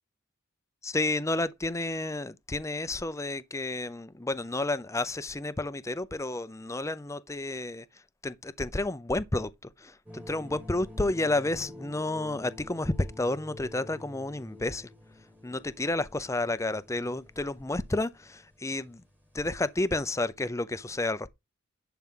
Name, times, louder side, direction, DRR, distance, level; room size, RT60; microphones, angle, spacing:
voice 1, 0.8-7.9 8.2-14.9 15.4-19.0 19.3-21.3, left 2 dB, 15° left, 0.6 m, -31 dB
sound 1, 10.1-20.1, left 1 dB, 10° right, 1.6 m, -49 dB
11.0 x 5.8 x 3.8 m
head